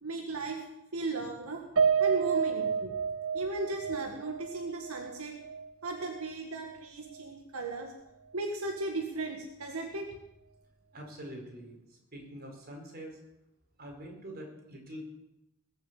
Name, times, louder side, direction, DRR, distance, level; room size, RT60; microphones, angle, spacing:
voice 1, 0.0-0.6 0.9-1.6 2.0-2.9 3.3-5.3 5.8-7.9 8.3-10.1, right 3 dB, 85° right, 2 dB, 2.0 m, -36 dB
Piano, 1.8-6.2 6.6-6.8 7.2-7.3, right 6 dB, 65° right, 1.2 m, -30 dB
voice 2, 10.9-11.8 12.1-13.2 13.8-15.2, equal, 45° right, 1 dB, 4.9 m, -44 dB
20.5 x 7.9 x 8.3 m, 0.89 s
head